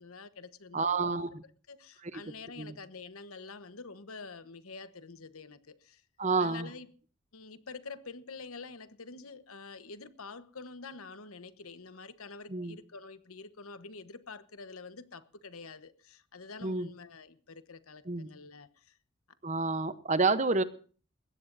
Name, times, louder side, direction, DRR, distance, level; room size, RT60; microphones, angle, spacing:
voice 1, 0.0-1.4 1.7-6.0 6.4-6.9 7.3-18.9, left 4 dB, 85° left, 1.1 m, -47 dB
voice 2, 0.7-1.4 2.0-2.2 2.6-2.8 6.2-6.7 12.5-12.8 16.6-16.9 18.1-18.3 19.4-20.6, right 3 dB, 35° right, 0.8 m, -29 dB
21.5 x 16.5 x 2.6 m
head